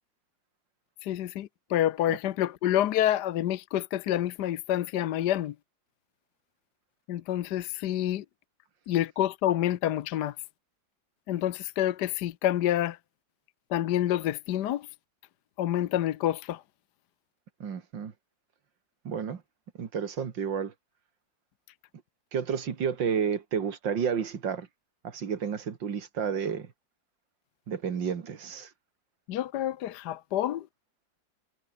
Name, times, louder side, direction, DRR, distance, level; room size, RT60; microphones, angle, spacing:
voice 1, 1.0-5.5 7.1-8.2 8.9-10.4 11.3-13.0 13.7-14.9 15.6-16.6 29.3-30.7, left 12 dB, 70° left, 1.3 m, -28 dB
voice 2, 17.6-18.1 19.0-19.4 19.8-20.7 22.3-24.7 25.0-26.7 27.7-28.7, right 7 dB, 90° right, 2.6 m, -31 dB
omnidirectional pair, 1.9 m